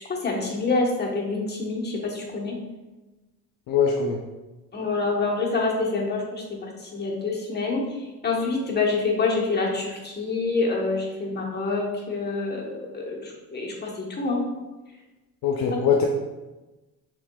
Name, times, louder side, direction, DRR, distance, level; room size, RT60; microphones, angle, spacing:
voice 1, 0.1-2.6 4.7-8.0 8.2-14.4 15.7-15.8, left 3 dB, 30° left, -2 dB, 1.0 m, -27 dB
voice 2, 3.7-4.2 15.4-16.1, left 6 dB, 75° left, 1 dB, 0.5 m, -22 dB
6.1 x 3.7 x 2.2 m, 1.1 s
cardioid pair, 105°, 34 cm